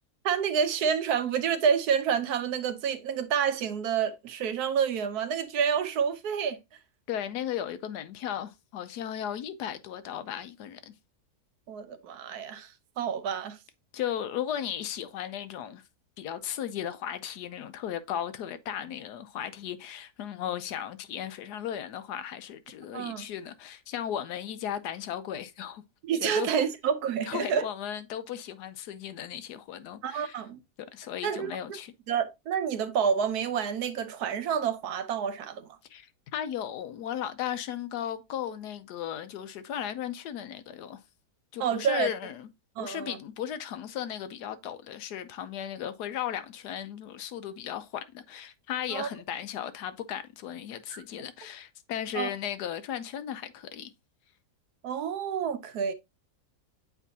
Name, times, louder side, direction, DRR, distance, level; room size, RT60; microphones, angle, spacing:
voice 1, 0.2-6.6 11.7-13.6 22.9-23.3 26.0-27.6 30.0-30.6 31.2-31.5 32.1-35.7 41.6-42.1 42.8-43.2 48.9-49.1 50.9-51.0 52.1-52.3 54.8-55.9, right 7 dB, 75° right, 1.2 m, -28 dB
voice 2, 7.1-10.9 13.9-15.8 16.2-25.8 26.2-26.5 27.3-30.4 30.9-31.9 35.9-41.0 41.5-42.5 42.8-53.9, left 10 dB, 80° left, 1.2 m, -36 dB
8.2 x 4.5 x 2.7 m
omnidirectional pair, 1.7 m